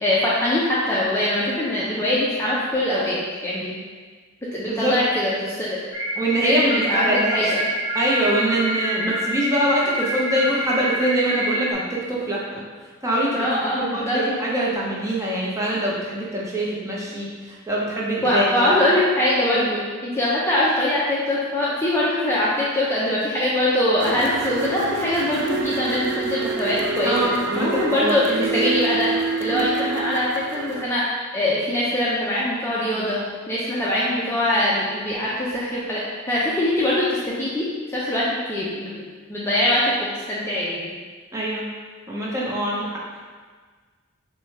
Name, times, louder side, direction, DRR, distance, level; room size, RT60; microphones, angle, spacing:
voice 1, 0.0-3.8 4.5-5.8 6.4-7.6 13.3-14.2 18.2-27.2 27.6-29.1 29.4-31.0 31.3-33.2 33.5-36.0 36.3-37.6 37.9-39.0 39.3-39.8 40.3-40.9, left 1 dB, 10° left, -7 dB, 0.5 m, -22 dB
sound 1, 5.9-11.7, right 1 dB, 50° left, 1.5 m, -26 dB
voice 2, 6.2-7.4 7.9-12.6 13.0-13.4 13.8-17.3 17.7-18.7 19.5-19.7 27.0-28.5 41.3-41.7 42.1-43.0, right 1 dB, 15° right, -5 dB, 0.7 m, -24 dB
sound 2, 24.0-30.8, right 4 dB, 50° right, 0.4 m, -27 dB
6.0 x 2.3 x 3.2 m, 1.5 s
head